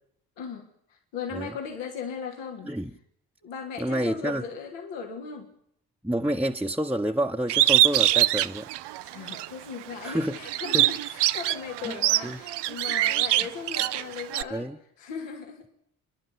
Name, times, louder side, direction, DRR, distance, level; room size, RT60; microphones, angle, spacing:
voice 1, 0.4-2.7 3.4-5.5 9.0-14.7 15.0-15.7, left 6 dB, 75° left, 3.4 m, -37 dB
voice 2, 3.8-4.4 6.0-8.7 10.0-10.4 10.7-10.9 11.8-11.9 12.2-12.4 14.5-14.8, right 1 dB, 5° right, 1.2 m, -28 dB
Bird, 7.5-9.5 9.9-14.4, right 14 dB, 65° right, 0.8 m, -23 dB
30.0 x 11.0 x 8.2 m
hypercardioid pair, 50°, 44 cm